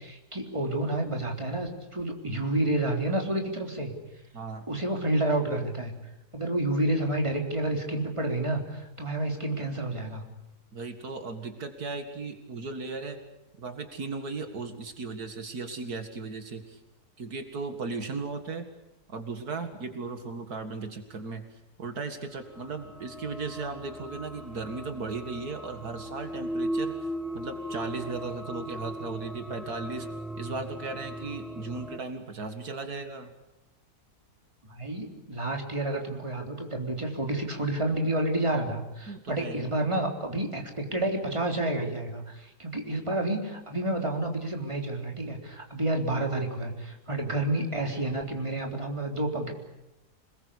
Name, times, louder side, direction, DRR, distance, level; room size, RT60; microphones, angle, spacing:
voice 1, 0.0-3.9 4.7-5.9 6.3-10.2 34.7-49.5, right 1 dB, 20° right, 2 dB, 3.8 m, -29 dB
voice 2, 4.3-4.7 10.7-13.2 13.6-16.8 17.2-18.7 19.1-21.4 21.8-26.9 27.3-30.1 30.4-33.3 39.1-39.6, right 4 dB, 70° right, 7 dB, 2.4 m, -36 dB
sound 1, 22.5-32.0, equal, ahead, 0.5 m, -37 dB
27.5 x 21.0 x 8.5 m, 0.93 s
omnidirectional pair, 1.7 m